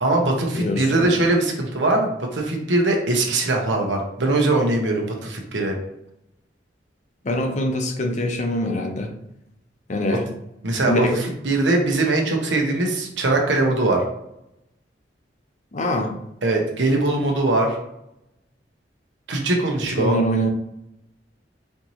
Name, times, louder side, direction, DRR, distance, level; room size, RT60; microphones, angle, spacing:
voice 1, 0.0-5.8 10.6-14.0 16.4-17.8 19.3-20.2, right 2 dB, 90° right, 1 dB, 0.9 m, -21 dB
voice 2, 0.5-1.2 7.2-9.1 9.9-10.3 10.9-11.2 15.7-16.1 20.0-20.5, left 1 dB, 40° left, 3 dB, 0.6 m, -24 dB
4.4 x 2.7 x 3.0 m, 0.82 s
head